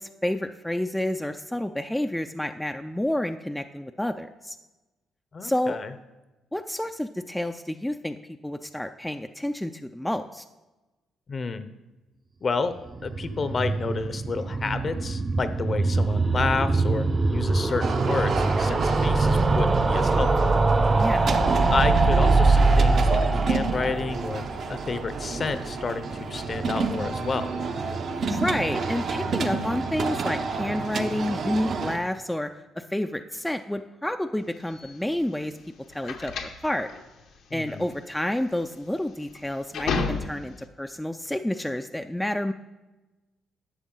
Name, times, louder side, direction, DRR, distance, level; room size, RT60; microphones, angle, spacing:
voice 1, 0.0-4.6 5.4-5.8 6.5-8.2 8.4-10.4 21.0-21.3 28.3-32.5 32.8-35.5 35.9-36.9 37.5-42.5, left 1 dB, 5° left, 7 dB, 0.4 m, -29 dB
voice 2, 5.3-5.9 11.3-11.7 12.4-12.7 13.0-20.6 21.7-24.4 24.7-27.5 37.5-37.9, left 4 dB, 40° left, 11 dB, 0.7 m, -30 dB
sound 1, 12.8-25.8 26.1-26.2 26.4-26.5 26.7-26.8, right 3 dB, 30° right, 0.7 m, -23 dB
sound 2, 17.8-32.0, right 4 dB, 55° right, 0.8 m, -30 dB
sound 3, 34.7-40.7, left 4 dB, 80° left, 0.9 m, -33 dB
11.0 x 7.0 x 3.8 m, 1.1 s
cardioid pair, 90°, 0 cm